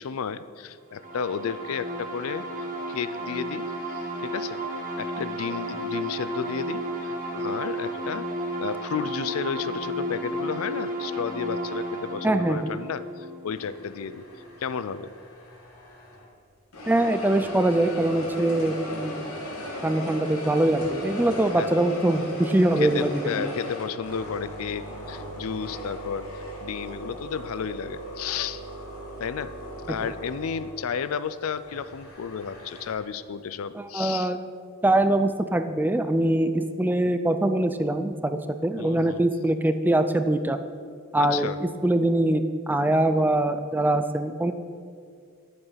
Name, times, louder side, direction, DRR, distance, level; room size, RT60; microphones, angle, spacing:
voice 1, 0.0-2.5 2.9-3.7 3.9-4.6 5.0-8.3 8.6-14.2 14.6-15.1 18.2-18.4 21.6-21.7 22.8-26.3 26.6-28.6 29.2-29.5 29.9-34.3 38.8-39.2 41.2-41.6, left 6 dB, 75° left, 15 dB, 0.4 m, -32 dB
sound 1, 0.9-14.4, right 1 dB, 40° right, 1.6 m, -33 dB
voice 2, 12.2-12.6 16.9-19.3 19.8-23.5 33.8-34.4 34.8-40.6 41.1-44.5, right 1 dB, 10° right, 9 dB, 0.4 m, -23 dB
sound 2, 13.5-16.3 16.7-32.9, equal, 90° left, 2.0 m, -38 dB
9.5 x 8.0 x 5.7 m, 2.1 s
head